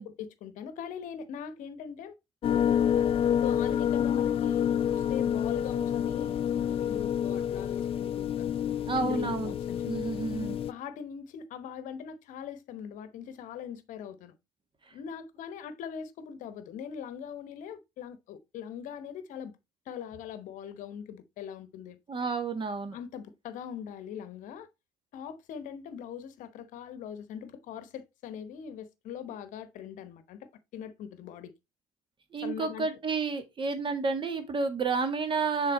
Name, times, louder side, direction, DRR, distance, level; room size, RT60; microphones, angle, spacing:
voice 1, 0.0-2.2 3.4-8.5 9.0-9.8 10.7-14.3 14.9-19.6 19.9-22.0 22.9-24.7 25.1-31.5 32.4-32.9, left 8 dB, 60° left, 1.0 m, -41 dB
sound 1, 2.4-10.7, left 9 dB, 40° left, 0.4 m, -28 dB
voice 2, 8.9-9.5 9.9-10.6 14.9-15.0 22.1-23.0 32.3-35.7, right 4 dB, 35° right, 1.6 m, -30 dB
6.7 x 3.9 x 4.0 m
hypercardioid pair, 55°, 15 cm